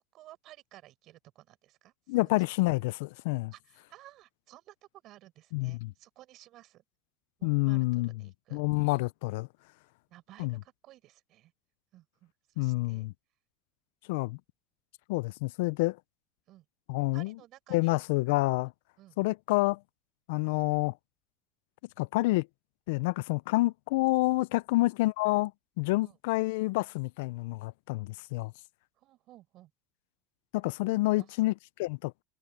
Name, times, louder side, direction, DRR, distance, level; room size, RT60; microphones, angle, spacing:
voice 1, 0.1-2.2 3.5-4.7 5.0-6.8 7.4-8.6 10.1-11.5 11.9-13.1 16.5-16.6 17.1-18.0 19.0-19.2 24.7-24.9 26.0-26.2 29.0-29.7 31.2-31.3, right 15 dB, 40° right, 6.2 m, -55 dB
voice 2, 2.1-3.5 5.5-5.9 7.4-8.1 8.5-9.5 10.4-10.6 12.6-13.1 14.1-14.4 15.1-16.0 16.9-17.3 17.7-18.7 19.2-19.8 20.3-20.9 22.0-22.5 22.9-25.5 25.8-28.5 30.5-32.2, left 22 dB, 70° left, 0.3 m, -28 dB
cardioid pair, 175°, 0 cm